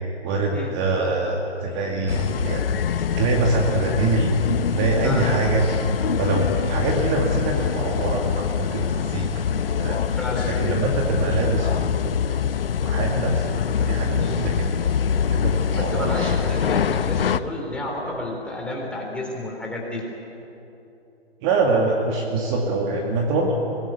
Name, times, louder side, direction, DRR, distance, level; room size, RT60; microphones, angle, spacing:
voice 1, 0.2-2.7 3.2-4.3 4.7-5.7 6.2-9.3 9.8-10.1 10.5-11.7 12.8-14.9 15.3-16.6 21.4-23.5, right 3 dB, 25° right, 0 dB, 2.3 m, -24 dB
sound 1, 2.1-17.4, left 8 dB, 55° left, 1.0 m, -24 dB
voice 2, 10.1-10.5 14.2-14.4 15.7-20.0, left 1 dB, 5° left, -2 dB, 3.5 m, -31 dB
24.5 x 20.5 x 9.5 m, 2.9 s
hypercardioid pair, 145°, 33 cm